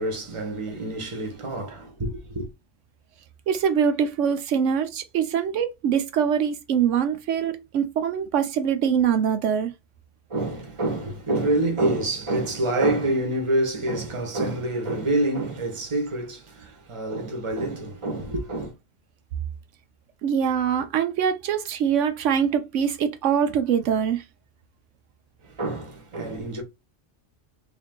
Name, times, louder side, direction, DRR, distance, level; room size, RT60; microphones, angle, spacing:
voice 1, 0.0-2.4 10.3-18.7 25.4-26.6, right 1 dB, 25° right, 1.0 m, -27 dB
voice 2, 3.5-9.7 20.2-24.2, right 8 dB, 85° right, 1.0 m, -23 dB
3.4 x 2.8 x 3.6 m
omnidirectional pair, 1.2 m